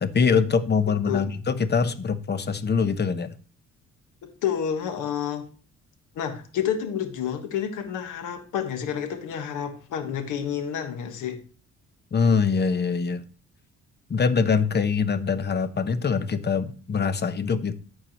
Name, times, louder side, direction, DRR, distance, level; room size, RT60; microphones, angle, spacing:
voice 1, 0.0-3.3 12.1-13.2 14.1-17.7, left 5 dB, 35° left, 12 dB, 0.9 m, -23 dB
voice 2, 4.2-5.5 6.1-11.4, left 8 dB, 90° left, 6 dB, 1.4 m, -29 dB
14.0 x 4.8 x 3.0 m, 0.38 s
cardioid pair, 90°, 30 cm